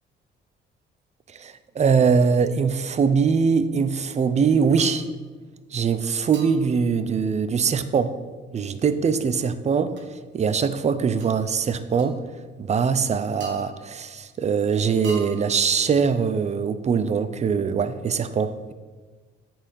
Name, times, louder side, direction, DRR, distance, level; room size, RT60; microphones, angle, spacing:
voice 1, 1.3-5.1 5.7-8.2 8.5-10.0 10.3-12.2 12.6-18.7, right 6 dB, 35° right, 12 dB, 0.5 m, -22 dB
sound 1, 4.8-5.1 6.3-6.7 10.0-10.1 11.2-11.4 12.0-12.1 13.4-14.1 15.0-15.7, right 4 dB, 65° right, 1.4 m, -41 dB
7.8 x 4.3 x 5.6 m, 1.4 s
cardioid pair, 90°, 20 cm